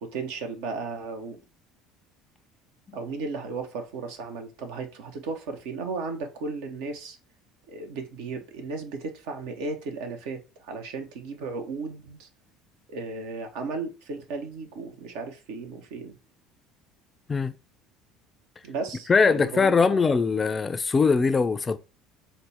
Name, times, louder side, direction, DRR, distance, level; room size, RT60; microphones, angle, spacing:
voice 1, 0.0-1.4 2.9-7.2 7.7-12.3 12.9-16.2 18.6-20.0, right 4 dB, 75° right, 0.7 m, -35 dB
voice 2, 19.1-21.8, left 4 dB, 30° left, 0.3 m, -21 dB
4.1 x 2.1 x 3.3 m
hypercardioid pair, 70°, 0 cm